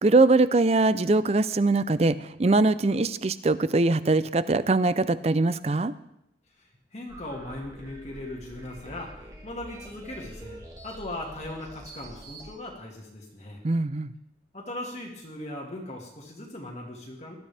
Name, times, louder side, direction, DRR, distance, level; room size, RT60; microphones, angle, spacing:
voice 1, 0.0-5.9 13.6-14.1, right 2 dB, 35° right, 15 dB, 0.5 m, -22 dB
voice 2, 6.6-10.6 10.8-13.6 14.5-17.4, left 1 dB, 40° left, -2 dB, 1.9 m, -39 dB
sound 1, 7.1-12.5, right 1 dB, 20° right, 1.6 m, -45 dB
19.0 x 12.5 x 3.4 m, 0.80 s
head